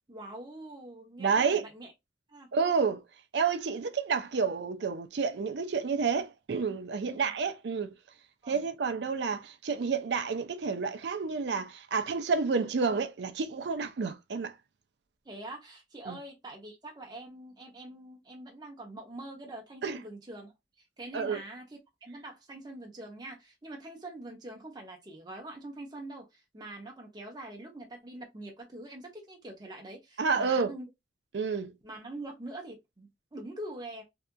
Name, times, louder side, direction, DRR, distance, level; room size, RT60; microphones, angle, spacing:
voice 1, 0.1-1.9 2.3-2.5 7.0-7.3 8.4-8.6 15.2-20.5 21.0-30.9 31.8-34.0, right 1 dB, 25° right, 0.7 m, -44 dB
voice 2, 1.2-1.6 2.5-3.0 3.3-7.9 8.5-14.5 16.1-16.2 19.8-20.0 21.1-21.4 30.2-30.7 31.3-31.7, right 5 dB, 65° right, 0.4 m, -30 dB
2.7 x 2.4 x 2.2 m
head